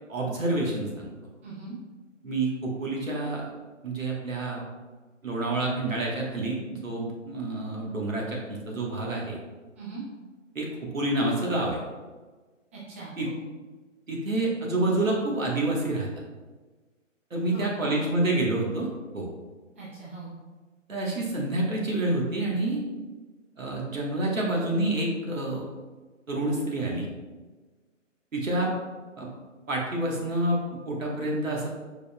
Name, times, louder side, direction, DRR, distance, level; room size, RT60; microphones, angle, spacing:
voice 1, 0.1-1.1 2.2-3.5 3.8-4.6 5.2-9.4 10.5-11.8 13.2-13.3 14.1-16.1 17.3-18.9 19.1-19.3 20.9-22.8 23.6-25.6 26.3-27.1 28.3-28.7 29.2-29.3 29.7-31.7, right 2 dB, 85° right, -2 dB, 1.4 m, -28 dB
voice 2, 1.4-1.8 9.7-10.0 12.7-13.4 17.5-18.0 19.7-20.3, right 4 dB, 10° right, -8 dB, 0.6 m, -40 dB
4.9 x 4.8 x 2.3 m, 1.3 s
figure-of-eight pair, 150°, 39 cm